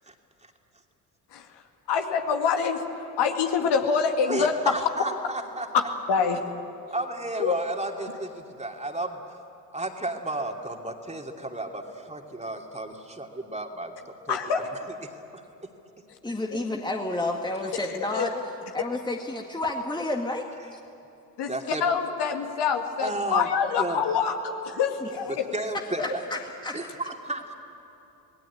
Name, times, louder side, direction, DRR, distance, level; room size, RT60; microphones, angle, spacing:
voice 1, 1.3-1.6 1.9-4.7 6.1-6.5 7.4-7.6 14.3-14.7 16.1-16.2 17.7-18.3 21.4-21.5 21.8-25.5 26.0-26.1, left 6 dB, 55° left, 4 dB, 2.2 m, -26 dB
voice 2, 4.3-5.7 6.9-9.2 9.7-14.0 14.3-14.4 15.0-15.4 21.5-21.8 23.0-23.5 23.8-24.0 25.3-26.2 26.7-27.5, right 2 dB, 15° right, 3 dB, 2.9 m, -32 dB
voice 3, 16.2-20.4 20.7-20.8 25.7-26.8, left 2 dB, 10° left, 2 dB, 2.0 m, -31 dB
27.5 x 20.0 x 8.6 m, 2.9 s
figure-of-eight pair, 50°, 49 cm